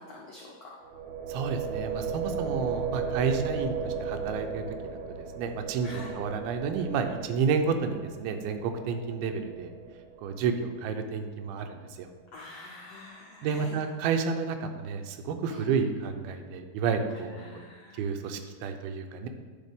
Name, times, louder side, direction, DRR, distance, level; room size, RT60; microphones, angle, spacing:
voice 1, 0.1-0.7 5.8-6.1 12.3-13.8 15.5-15.6 17.4-18.0, left 3 dB, 80° left, -4 dB, 1.4 m, -46 dB
sound 1, 0.8-10.7, right 5 dB, 70° right, 1.8 m, -36 dB
voice 2, 1.3-3.7 4.0-4.6 5.4-9.7 10.2-12.1 13.4-17.6 18.0-19.3, right 5 dB, 90° right, 6 dB, 2.6 m, -30 dB
10.5 x 5.7 x 3.5 m, 1.5 s
omnidirectional pair, 4.3 m